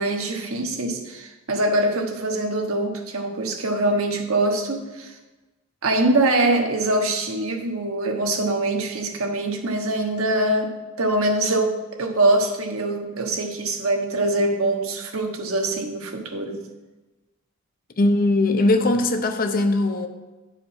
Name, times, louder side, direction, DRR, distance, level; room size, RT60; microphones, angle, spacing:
voice 1, 0.0-5.2 5.8-16.6, right 2 dB, 75° right, 3 dB, 1.2 m, -23 dB
voice 2, 18.0-20.1, left 2 dB, 45° left, 7 dB, 0.7 m, -20 dB
9.8 x 4.9 x 5.8 m, 1.2 s
head